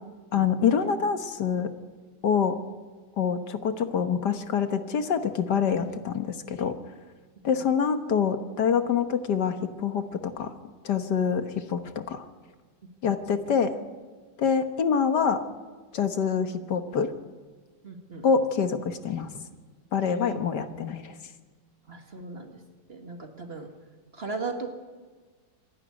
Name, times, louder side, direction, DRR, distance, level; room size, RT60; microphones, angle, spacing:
voice 1, 0.3-1.7 2.2-2.6 3.2-6.7 7.4-10.5 10.8-12.2 13.0-13.7 14.4-15.4 15.9-17.1 18.2-19.3 19.9-21.1, left 6 dB, 65° left, 9 dB, 1.8 m, -26 dB
voice 2, 17.8-18.3 20.1-20.4 21.9-22.6 22.9-23.7 24.1-24.7, right 3 dB, 35° right, 5 dB, 2.0 m, -37 dB
26.5 x 11.5 x 9.8 m, 1.4 s
omnidirectional pair, 2.0 m